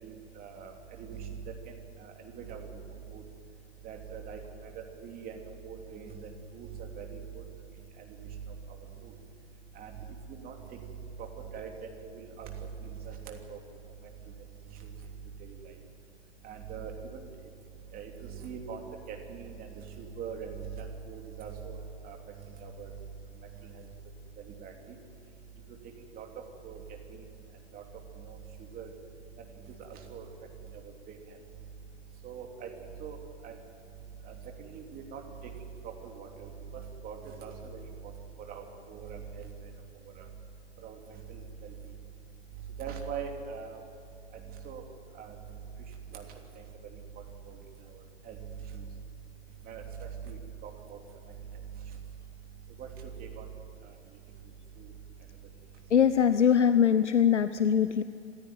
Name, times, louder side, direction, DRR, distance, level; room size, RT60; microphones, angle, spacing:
voice 1, 0.0-1.4 2.0-2.8 3.1-3.2 3.8-7.4 8.0-8.4 8.7-8.8 9.0-9.1 9.7-9.9 10.3-10.8 11.2-11.3 11.5-13.6 14.8-14.9 15.4-15.6 16.4-17.2 17.9-18.8 19.1-22.2 22.6-22.9 23.6-23.9 24.4-24.9 26.1-26.3 26.6-26.8 27.1-27.3 27.7-27.8 28.2-28.4 28.7-28.9 29.8-30.3 31.1-31.2 32.2-32.7 33.0-33.2 33.4-33.5 34.2-35.2 36.0-38.1 38.5-39.7 40.2-40.3 40.8-41.7 42.8-43.8 44.6-44.9 45.1-45.3 46.1-46.2 46.9-47.0 47.5-47.6 48.2-48.4 48.6-48.9 49.7-51.0 52.8-52.9 53.2-53.5 54.8-54.9, right 6 dB, 25° right, 2 dB, 3.1 m, -42 dB
voice 2, 55.9-58.0, left 8 dB, 80° left, 13 dB, 0.9 m, -22 dB
26.5 x 15.5 x 9.3 m, 2.5 s
figure-of-eight pair, 115°, 35 cm